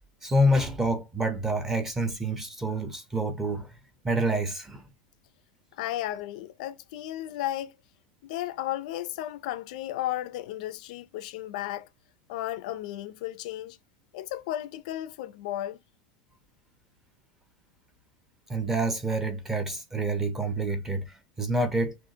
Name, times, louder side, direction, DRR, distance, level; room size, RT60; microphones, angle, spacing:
voice 1, 0.2-3.7 4.0-4.9 18.5-22.0, right 1 dB, 5° right, 0.8 m, -27 dB
voice 2, 5.8-7.8 8.2-11.9 12.3-13.8 14.1-15.8, left 13 dB, 60° left, 0.5 m, -34 dB
6.1 x 2.5 x 2.7 m
supercardioid pair, 170°, 5 cm